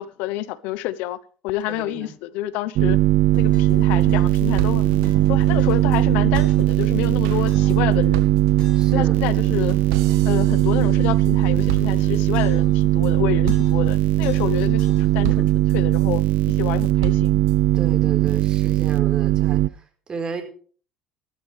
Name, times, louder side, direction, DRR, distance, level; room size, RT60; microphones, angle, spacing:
voice 1, 0.0-3.0 3.3-4.9 5.3-8.4 8.9-9.8 10.2-16.2 16.5-17.4, left 15 dB, 80° left, 0.9 m, -28 dB
voice 2, 1.7-2.1 8.7-9.2 15.3-15.5 17.7-20.4, right 4 dB, 30° right, 4.5 m, -33 dB
sound 1, 2.8-19.7, right 16 dB, 70° right, 0.6 m, -19 dB
sound 2, 3.3-6.8 7.5-7.9 8.6-9.0 9.3-12.8 13.5-13.9 14.2-15.6, left 1 dB, 40° left, 7.0 m, -39 dB
sound 3, 3.7-3.8 4.0-4.1 4.3-6.0 6.3-11.4 11.7-12.4 12.8-13.1 13.5-14.0 14.4-14.9 15.2-16.2 16.6-17.6, right 11 dB, 85° right, 1.9 m, -35 dB
16.0 x 12.5 x 3.4 m
supercardioid pair, 95°, 3 cm